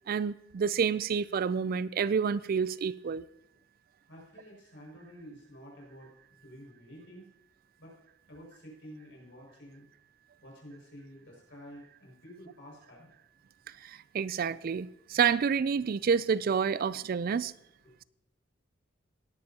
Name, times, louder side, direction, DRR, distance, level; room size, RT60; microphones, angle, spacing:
voice 1, 0.1-3.2 13.8-17.5, right 6 dB, 50° right, 0.4 m, -29 dB
voice 2, 4.1-7.3 7.8-8.0 8.3-9.8 10.4-13.1 17.8-17.9, equal, 70° left, 5.8 m, -50 dB
18.0 x 11.5 x 2.8 m
head